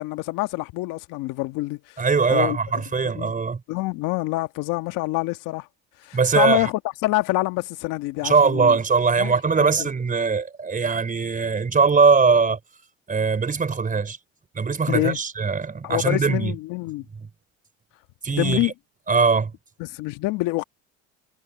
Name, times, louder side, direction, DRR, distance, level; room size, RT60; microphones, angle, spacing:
voice 1, 0.0-2.0 2.3-2.6 3.0-3.3 3.7-5.7 6.0-8.8 9.2-9.7 14.9-15.2 15.8-17.0 18.3-18.7 19.8-20.6, left 20 dB, 70° left, 1.5 m, -26 dB
voice 2, 2.0-3.6 6.1-6.7 8.2-12.6 13.1-14.2 14.6-16.5 18.2-18.7 19.1-19.5, right 5 dB, 25° right, 3.7 m, -21 dB
supercardioid pair, 95°, 34 cm